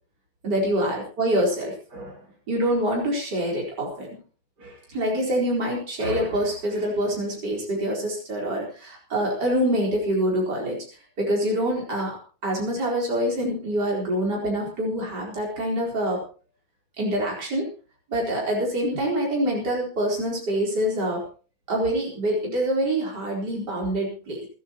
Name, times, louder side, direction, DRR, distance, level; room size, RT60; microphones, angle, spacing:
voice 1, 0.4-2.2 2.5-4.1 4.6-10.8 11.2-16.2 17.0-17.7 18.1-21.2 21.7-24.5, right 1 dB, 55° right, -3 dB, 4.9 m, -25 dB
28.0 x 10.0 x 3.0 m, 0.37 s
omnidirectional pair, 2.1 m